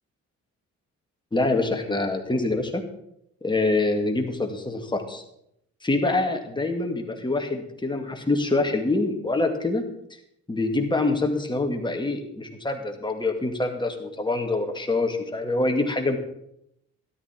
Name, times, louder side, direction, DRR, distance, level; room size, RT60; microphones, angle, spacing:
voice 1, 1.3-2.8 3.4-5.2 5.8-9.8 10.5-16.2, left 2 dB, 15° left, 3 dB, 2.2 m, -25 dB
13.0 x 11.5 x 4.5 m, 0.77 s
cardioid pair, 90°, 30 cm